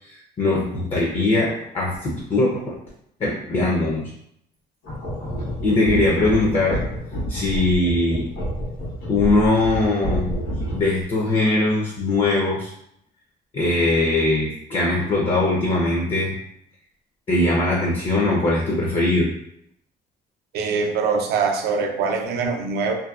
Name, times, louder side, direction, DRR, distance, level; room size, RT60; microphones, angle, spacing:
voice 1, 0.4-2.7 3.2-4.1 5.6-6.8 7.3-8.3 9.1-10.3 10.7-12.7 13.5-16.3 17.3-19.3, left 2 dB, 35° left, -3 dB, 0.5 m, -21 dB
sound 1, 4.8-11.0, equal, 80° left, 1.1 m, -28 dB
voice 2, 20.5-22.9, right 5 dB, 70° right, 3 dB, 0.5 m, -23 dB
2.6 x 2.2 x 2.3 m, 0.73 s
cardioid pair, 110°, 17 cm